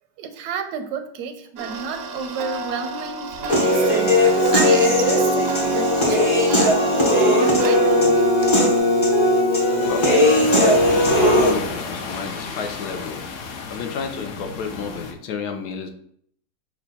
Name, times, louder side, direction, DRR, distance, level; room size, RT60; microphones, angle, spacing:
voice 1, 0.2-6.7 7.2-8.2 14.4-14.5, right 6 dB, 80° right, 8 dB, 1.1 m, -31 dB
Tick-tock, 1.6-8.8, right 2 dB, 65° right, 0.6 m, -31 dB
Human voice / Piano, 3.5-11.5, left 1 dB, 30° left, 0.5 m, -17 dB
voice 2, 9.8-10.4 11.1-13.2 13.7-15.9, left 6 dB, 80° left, 6 dB, 1.2 m, -31 dB
sound 1, 9.8-15.1, left 4 dB, 65° left, 0.8 m, -32 dB
5.8 x 2.2 x 4.1 m, 0.68 s
omnidirectional pair, 1.7 m